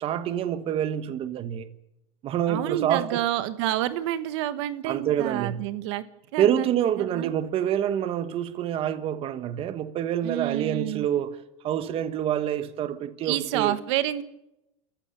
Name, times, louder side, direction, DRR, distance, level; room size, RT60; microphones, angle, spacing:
voice 1, 0.0-1.7 2.2-3.2 4.9-5.6 6.4-11.4 11.6-13.8, right 10 dB, 40° right, 1.3 m, -27 dB
voice 2, 2.5-6.0 6.3-6.7 7.0-7.3 10.2-11.1 13.2-14.2, right 13 dB, 75° right, 1.3 m, -28 dB
29.0 x 15.0 x 6.8 m
supercardioid pair, 140°, 15 cm